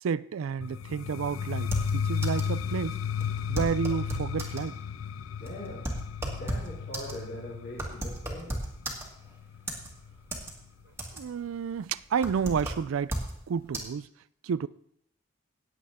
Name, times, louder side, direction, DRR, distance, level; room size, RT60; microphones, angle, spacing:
voice 1, 0.0-3.0 3.5-4.7 11.1-13.1 13.5-14.0 14.4-14.7, right 6 dB, 90° right, 0.4 m, -30 dB
sound 1, 0.6-10.4, left 7 dB, 80° left, 0.4 m, -34 dB
sound 2, 1.6-2.6 2.8-2.9 3.2-4.7 5.2-9.3 9.7-10.5 10.8-11.4 11.8-13.4 13.7-13.8, right 1 dB, 15° right, 1.9 m, -35 dB
voice 2, 5.4-5.9 6.4-8.6, left 1 dB, 55° left, 3.4 m, -41 dB
17.5 x 7.9 x 3.6 m
head